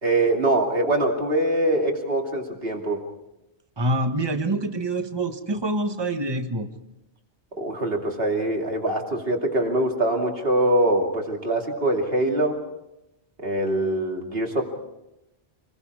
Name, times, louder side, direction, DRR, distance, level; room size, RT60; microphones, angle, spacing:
voice 1, 0.0-3.0 7.6-12.6 13.4-14.7, right 1 dB, 60° right, 1 dB, 2.9 m, -23 dB
voice 2, 3.8-6.7, right 2 dB, 25° right, 7 dB, 1.3 m, -26 dB
28.0 x 21.0 x 4.8 m, 0.90 s
omnidirectional pair, 1.1 m